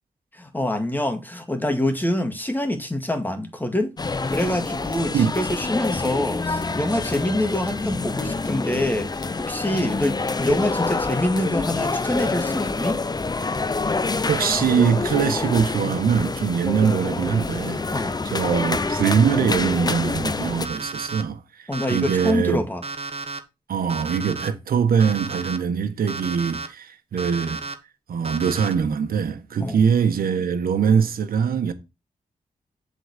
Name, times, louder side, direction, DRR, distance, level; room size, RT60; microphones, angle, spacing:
voice 1, 0.3-9.1 9.3-13.0 17.9-18.2 21.7-22.8 29.6-29.8, left 1 dB, 15° left, 2.1 m, -25 dB
sound 1, 4.0-20.7, left 3 dB, 30° left, 0.6 m, -27 dB
voice 2, 14.3-17.8 18.2-22.6 23.7-27.6 28.1-31.7, right 7 dB, 85° right, 1.3 m, -22 dB
Alarm, 20.6-21.2 21.7-22.3 22.8-23.4 23.9-24.5 25.0-25.6 26.1-26.7 27.2-27.7 28.2-28.8, right 3 dB, 45° right, 1.3 m, -32 dB
7.8 x 4.1 x 6.7 m
cardioid pair, 70°, 15 cm